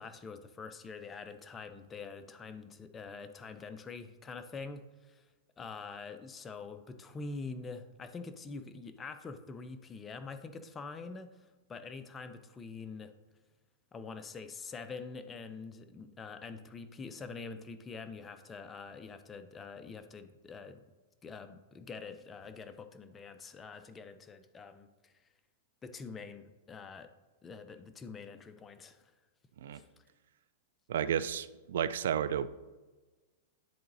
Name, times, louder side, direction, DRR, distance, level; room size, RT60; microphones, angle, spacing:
voice 1, 0.0-5.2 5.6-13.1 13.9-20.8 21.2-25.1 25.8-27.1 27.4-29.1 29.7-29.8, left 4 dB, 15° left, 9 dB, 0.5 m, -45 dB
voice 2, 30.9-32.5, right 9 dB, 75° right, 14 dB, 0.3 m, -32 dB
10.5 x 3.9 x 2.6 m, 1.2 s
hypercardioid pair, 135°, 0 cm